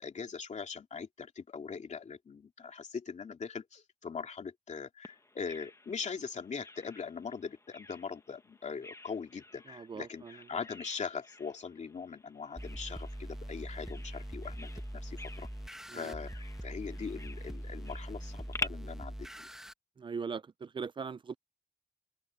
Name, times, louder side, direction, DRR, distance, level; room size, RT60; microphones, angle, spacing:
voice 1, 0.0-15.5 15.9-19.5, left 5 dB, 50° left, 2.7 m, -41 dB
Bird vocalization bird call bird song, 5.0-18.7, left 2 dB, 20° left, 1.3 m, -48 dB
voice 2, 9.7-10.4 15.9-16.1 20.0-21.4, right 5 dB, 30° right, 0.4 m, -40 dB
sound 1, 12.6-19.7, equal, 5° right, 1.0 m, -42 dB
wide cardioid pair, 125°, 15 cm